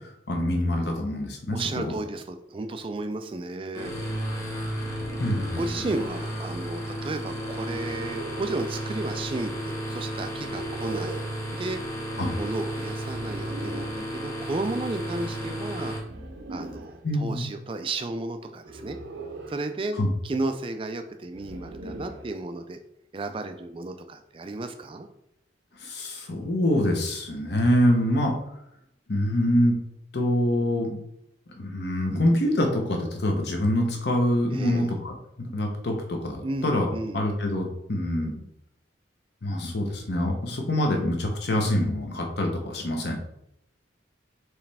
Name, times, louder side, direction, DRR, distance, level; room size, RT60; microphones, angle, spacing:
voice 1, 0.3-1.9 5.2-5.7 12.2-12.3 17.0-17.5 20.0-20.1 25.8-28.3 29.1-29.8 30.1-31.0 31.6-38.4 39.4-43.2, left 1 dB, 55° left, 2 dB, 0.8 m, -25 dB
voice 2, 1.5-3.9 5.5-11.3 11.5-11.8 12.4-15.9 16.5-19.0 19.5-20.0 20.2-22.8 23.1-25.1 28.0-28.2 34.5-34.9 36.4-37.2, right 2 dB, 25° right, 7 dB, 0.3 m, -33 dB
sound 1, 3.7-16.0, equal, 15° left, 0.9 m, -33 dB
sound 2, 4.7-5.7 7.6-8.6 10.4-11.4 13.0-14.0 16.0-17.0 18.6-19.7 21.3-22.3, right 2 dB, 65° right, 0.6 m, -40 dB
4.7 x 3.1 x 3.4 m, 0.78 s
head